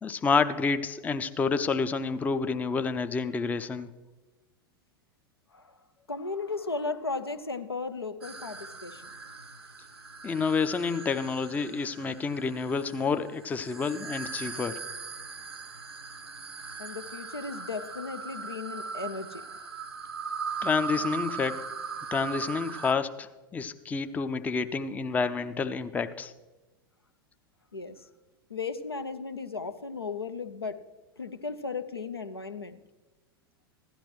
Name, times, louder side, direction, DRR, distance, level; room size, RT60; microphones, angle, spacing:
voice 1, 0.0-3.9 10.2-14.8 20.6-21.6 22.1-26.3, left 5 dB, 10° left, 11 dB, 0.5 m, -29 dB
voice 2, 6.1-9.0 16.8-19.6 27.7-28.0 28.5-30.7 31.2-32.8, left 4 dB, 85° left, 10 dB, 0.6 m, -35 dB
sound 1, 8.2-22.9, right 5 dB, 80° right, 0.7 m, -39 dB
16.0 x 11.5 x 3.1 m, 1.2 s
figure-of-eight pair, 90°, 13 cm